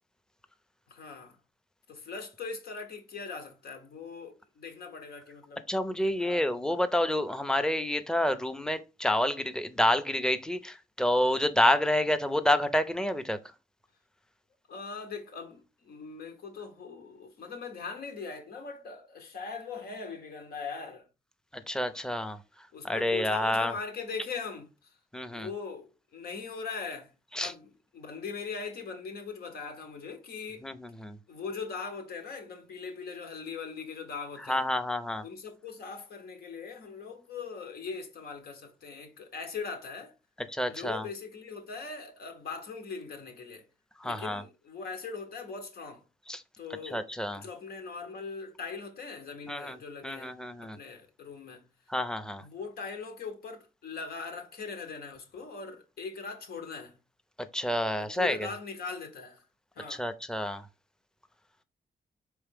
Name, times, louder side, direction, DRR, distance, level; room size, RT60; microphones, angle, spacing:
voice 1, 0.9-1.4 1.9-5.6 6.1-6.5 14.7-21.1 22.7-25.0 25.3-27.1 27.4-30.6 31.3-34.7 35.2-40.1 40.7-43.6 44.0-46.0 46.6-47.1 47.3-50.3 50.6-51.7 52.4-57.0 58.0-59.4 59.7-60.1, left 5 dB, 85° left, 1.1 m, -40 dB
voice 2, 5.7-13.4 21.5-22.4 22.8-23.7 25.1-25.5 27.3-27.5 30.6-31.2 34.5-35.2 40.5-41.1 44.0-44.4 46.3-46.4 46.9-47.4 49.5-49.8 50.0-50.8 51.9-52.4 57.4-58.4 59.9-60.7, left 1 dB, 5° left, 0.5 m, -28 dB
4.6 x 3.3 x 3.5 m
cardioid pair, 95°, 16 cm